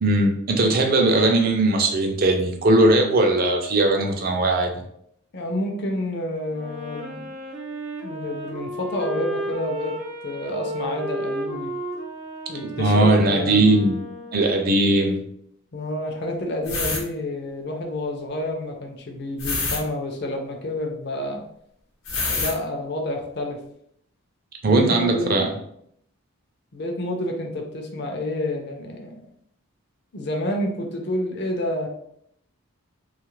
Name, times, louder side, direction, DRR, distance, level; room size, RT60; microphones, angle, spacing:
voice 1, 0.0-4.8 12.8-14.0 14.3-15.2 24.6-25.5, right 2 dB, 45° right, 3 dB, 0.4 m, -19 dB
voice 2, 5.3-7.3 8.0-11.7 12.5-13.9 15.7-21.4 22.1-23.6 24.6-25.3 26.7-29.3 30.1-31.9, left 1 dB, 50° left, 1 dB, 0.5 m, -29 dB
Wind instrument woodwind instrument, 6.5-14.8, right 1 dB, 75° right, 0.8 m, -33 dB
sound 1, 16.7-17.0 19.4-19.8 22.0-22.5, left 3 dB, 75° left, 0.9 m, -25 dB
2.7 x 2.4 x 3.1 m, 0.70 s
head